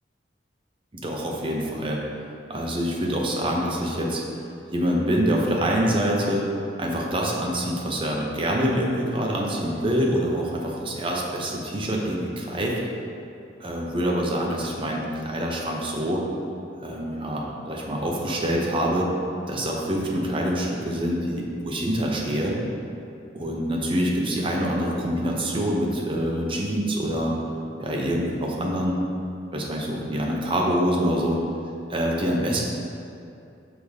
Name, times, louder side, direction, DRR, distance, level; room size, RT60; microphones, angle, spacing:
voice 1, 0.9-2.0 2.5-4.2 4.7-6.5 6.8-12.7 13.6-16.2 16.8-19.1 19.5-22.6 23.3-27.3 27.8-29.0 29.5-31.4 31.9-32.6, equal, 30° right, -2 dB, 0.8 m, -25 dB
6.0 x 3.6 x 4.9 m, 2.6 s
head